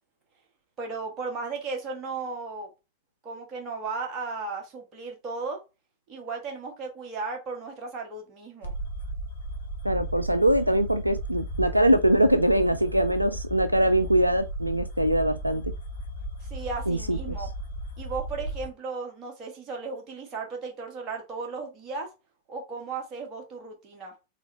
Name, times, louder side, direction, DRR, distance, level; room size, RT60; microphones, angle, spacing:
voice 1, 0.8-2.7 3.2-5.6 6.1-8.7 16.4-17.5 18.0-22.1 22.5-24.1, right 4 dB, 30° right, 1.8 m, -35 dB
sound 1, 8.6-18.7, right 1 dB, 70° left, 0.9 m, -35 dB
voice 2, 9.8-15.6 16.9-17.4, right 1 dB, 90° right, 0.3 m, -23 dB
4.1 x 3.8 x 3.1 m
figure-of-eight pair, 90°, 0 cm